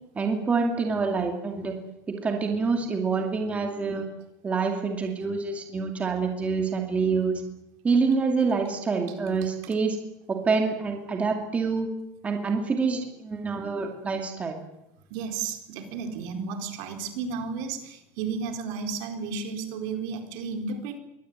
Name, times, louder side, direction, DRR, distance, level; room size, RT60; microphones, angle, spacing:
voice 1, 0.1-1.7 2.1-4.0 4.4-7.3 7.8-10.0 10.3-11.9 12.2-14.6, right 4 dB, 15° right, 3 dB, 2.4 m, -26 dB
voice 2, 15.1-21.0, right 5 dB, 60° right, 5 dB, 4.2 m, -33 dB
23.5 x 17.5 x 9.5 m, 0.88 s
cardioid pair, 165°, 8 cm